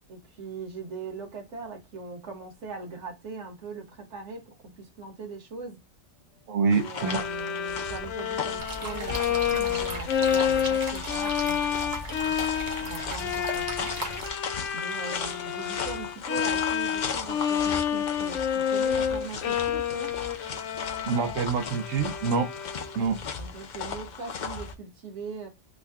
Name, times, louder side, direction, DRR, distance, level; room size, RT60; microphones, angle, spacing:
voice 1, 0.1-5.8 6.7-11.6 12.2-14.0 14.7-20.2 23.4-25.5, right 4 dB, 65° right, 1.5 m, -40 dB
voice 2, 6.5-7.2 21.1-22.5 23.0-23.2, right 5 dB, 85° right, 1.0 m, -26 dB
sound 1, 6.7-24.7, left 6 dB, 50° left, 0.6 m, -37 dB
Bowed string instrument, 7.0-23.1, left 8 dB, 75° left, 0.9 m, -29 dB
sound 2, 8.6-14.3, right 2 dB, 35° right, 0.8 m, -37 dB
3.7 x 2.1 x 3.4 m
omnidirectional pair, 1.3 m